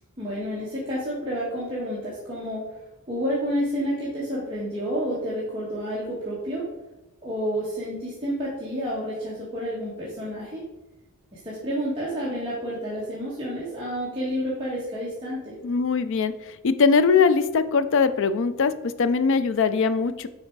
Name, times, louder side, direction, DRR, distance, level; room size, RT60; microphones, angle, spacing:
voice 1, 0.2-2.6 3.1-6.7 7.2-10.6 11.3-15.5, equal, 25° right, -8 dB, 1.4 m, -30 dB
voice 2, 15.6-20.3, left 5 dB, 60° left, 12 dB, 0.4 m, -21 dB
6.4 x 4.2 x 4.6 m, 1.0 s
head